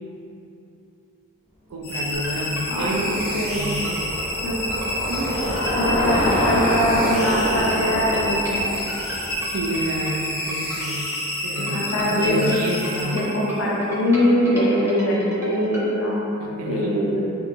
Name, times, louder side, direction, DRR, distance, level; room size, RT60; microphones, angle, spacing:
voice 1, 1.7-4.1 5.1-5.5 9.4-11.1 11.4-13.3 16.4-17.2, right 1 dB, 85° right, -1 dB, 0.4 m, -29 dB
sound 1, 1.8-13.7, left 1 dB, 50° left, 1.2 m, -29 dB
Bicycle, 2.0-10.3, equal, 30° left, 0.7 m, -27 dB
sound 2, 2.1-15.9, equal, 10° right, 0.4 m, -36 dB
voice 2, 2.7-3.7 4.4-4.6 5.8-8.7 11.6-12.5 13.1-16.2 16.7-17.2, equal, 65° left, -4 dB, 0.4 m, -22 dB
3.5 x 2.8 x 2.5 m, 3.0 s
head